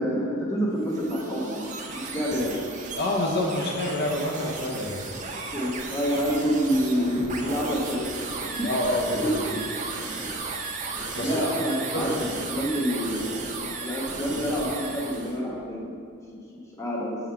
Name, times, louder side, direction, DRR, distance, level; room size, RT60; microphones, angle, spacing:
voice 1, 0.0-1.7 2.0-2.6 5.5-8.1 8.6-8.7 9.1-9.4 10.2-10.3 11.2-13.3 13.8-15.9 16.8-17.2, equal, 15° left, -4 dB, 1.1 m, -27 dB
sound 1, 0.7-15.4, right 3 dB, 35° right, 0.6 m, -35 dB
voice 2, 3.0-5.0 8.6-9.3 11.2-11.5 11.9-12.4 14.3-14.4, left 1 dB, 50° left, -1 dB, 0.6 m, -27 dB
6.1 x 3.9 x 5.6 m, 2.4 s
head